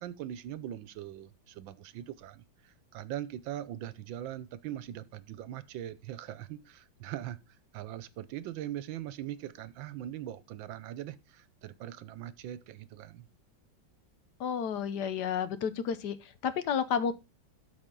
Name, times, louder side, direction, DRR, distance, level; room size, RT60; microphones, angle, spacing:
voice 1, 0.0-7.4 7.7-13.3, right 12 dB, 90° right, 1.4 m, -41 dB
voice 2, 14.4-17.1, left 7 dB, 65° left, 1.3 m, -31 dB
13.0 x 4.4 x 3.8 m
omnidirectional pair, 2.1 m